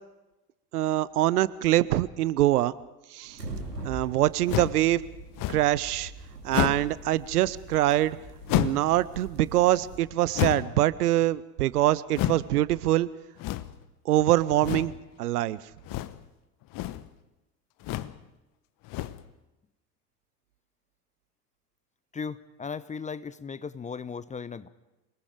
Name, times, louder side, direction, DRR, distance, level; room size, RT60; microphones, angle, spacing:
voice 1, 0.7-2.7 3.1-3.4 3.8-5.0 5.5-6.1 6.4-8.2 8.5-13.1 14.1-15.6, right 14 dB, 70° right, 19 dB, 0.8 m, -24 dB
sound 1, 3.2-10.0, right 2 dB, 90° right, 3.4 m, -43 dB
sound 2, 4.5-4.8 5.4-5.8 6.5-6.9 8.5-8.9 10.3-10.8 12.1-12.5 13.4-13.8 14.6-15.0 15.8-16.3 16.6-17.1 17.8-18.2 18.8-19.3, left 14 dB, 45° left, 1.0 m, -30 dB
voice 2, 22.1-24.7, left 5 dB, 15° left, 16 dB, 0.7 m, -37 dB
27.0 x 19.5 x 5.1 m, 1.0 s
figure-of-eight pair, 65°, 47 cm